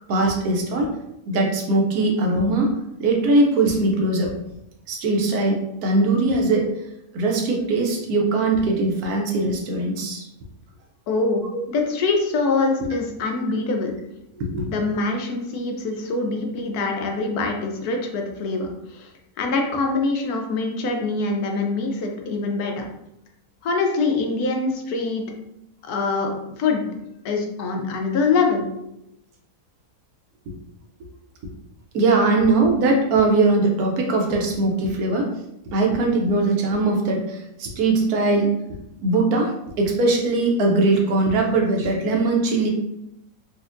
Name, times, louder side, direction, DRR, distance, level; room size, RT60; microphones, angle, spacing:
voice 1, 0.1-1.0 1.3-2.7 3.0-4.3 4.9-6.7 7.1-10.3 12.8-12.9 14.4-14.7 31.9-35.3 35.7-38.5 39.0-42.7, right 2 dB, 75° right, 1 dB, 1.2 m, -20 dB
voice 2, 11.1-11.4 11.7-13.9 14.7-19.1 19.4-22.9 23.6-25.2 25.8-26.8 27.2-28.7, left 3 dB, 80° left, 2 dB, 1.1 m, -24 dB
4.1 x 2.5 x 2.5 m, 0.83 s
omnidirectional pair, 1.6 m